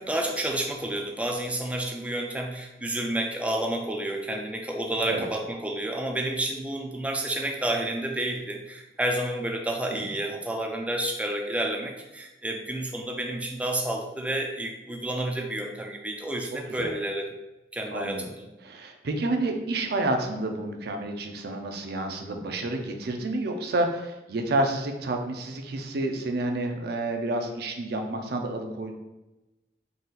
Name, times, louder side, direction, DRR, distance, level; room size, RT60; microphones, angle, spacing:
voice 1, 0.0-17.3 17.7-18.5, right 1 dB, 5° right, 1 dB, 0.3 m, -30 dB
voice 2, 17.9-18.3 18.6-28.9, right 2 dB, 60° right, 4 dB, 0.5 m, -29 dB
4.0 x 2.4 x 3.9 m, 1.0 s
head